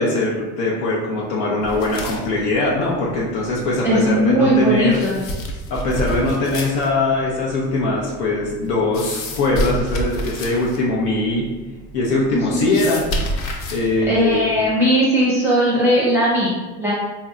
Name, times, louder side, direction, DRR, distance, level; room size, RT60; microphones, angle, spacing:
voice 1, 0.0-5.0 5.7-11.5 11.9-13.1 13.7-14.5, left 2 dB, 85° left, -3 dB, 0.8 m, -21 dB
sound 1, 1.6-14.7, equal, 45° left, 0.6 m, -31 dB
voice 2, 3.8-5.2 12.3-12.8 14.1-16.9, equal, 10° right, -7 dB, 0.6 m, -18 dB
4.3 x 2.7 x 2.4 m, 1.2 s
cardioid pair, 145°, 33 cm